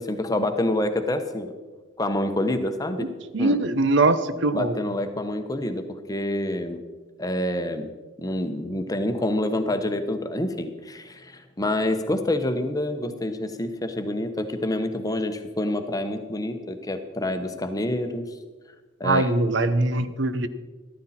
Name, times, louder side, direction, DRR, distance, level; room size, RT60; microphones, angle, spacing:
voice 1, 0.0-1.5 2.0-3.1 3.4-3.6 4.5-6.8 7.2-7.9 8.2-18.3 19.0-19.3, left 1 dB, 15° left, 7 dB, 0.9 m, -27 dB
voice 2, 3.3-4.8 19.0-20.5, right 2 dB, 60° right, 13 dB, 0.7 m, -22 dB
14.0 x 13.0 x 4.3 m, 1.3 s
head